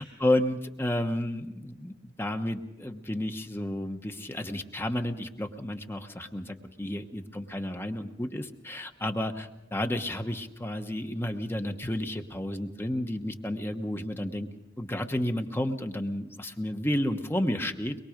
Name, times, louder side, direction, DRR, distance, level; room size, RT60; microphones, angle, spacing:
voice 1, 0.0-14.5 14.8-18.0, left 1 dB, 10° left, 6 dB, 1.1 m, -31 dB
24.0 x 22.0 x 5.1 m, 0.92 s
head